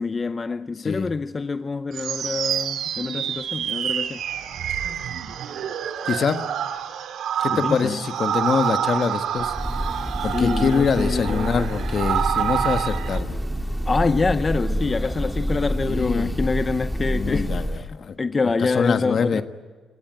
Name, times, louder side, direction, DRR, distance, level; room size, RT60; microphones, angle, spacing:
voice 1, 0.0-4.2 7.5-8.0 10.2-11.7 13.9-19.4, left 4 dB, 30° left, 0.6 m, -26 dB
sound 1, 1.9-13.2, right 9 dB, 75° right, 1.9 m, -27 dB
voice 2, 6.1-6.4 7.4-9.5 10.2-13.3 15.9-16.3 17.1-18.1 18.6-19.4, left 6 dB, 50° left, 1.5 m, -24 dB
Breathing / Bird, 9.4-17.9, equal, 5° right, 1.8 m, -27 dB
28.0 x 17.5 x 9.1 m
cardioid pair, 90°, 0 cm